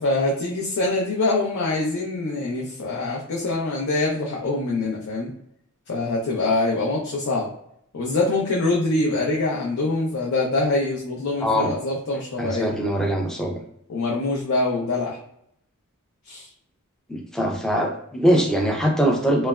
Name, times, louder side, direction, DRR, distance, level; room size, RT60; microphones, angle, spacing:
voice 1, 0.0-5.3 5.9-7.5 7.9-12.7 13.9-15.2 16.3-16.4, left 2 dB, 75° left, -3 dB, 0.5 m, -24 dB
voice 2, 11.4-11.7 12.4-13.6 17.1-19.5, equal, 5° left, 1 dB, 0.4 m, -22 dB
3.1 x 2.0 x 2.3 m, 0.72 s
head